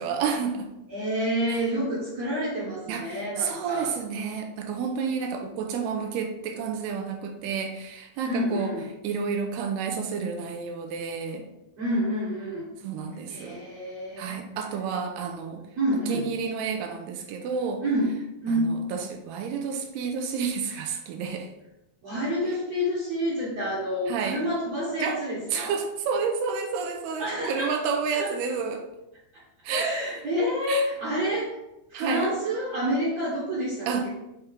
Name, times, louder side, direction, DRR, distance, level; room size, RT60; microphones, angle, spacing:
voice 1, 0.0-0.7 1.5-1.6 2.9-8.7 9.0-11.5 12.8-13.6 14.2-15.6 16.1-17.8 18.5-21.5 24.1-24.4 25.0-25.2 25.5-28.8 29.6-29.9 30.7-30.9 31.9-32.3 33.9-34.1, right 6 dB, 85° right, 4 dB, 2.7 m, -30 dB
voice 2, 0.9-3.9 8.2-8.9 11.8-12.7 13.3-14.4 15.8-16.2 17.8-18.1 18.4-18.7 22.0-25.8 27.2-27.8 28.1-28.3 29.7-31.6 31.9-34.1, equal, 55° right, -8 dB, 2.1 m, -28 dB
6.7 x 4.3 x 3.7 m, 0.90 s
omnidirectional pair, 4.6 m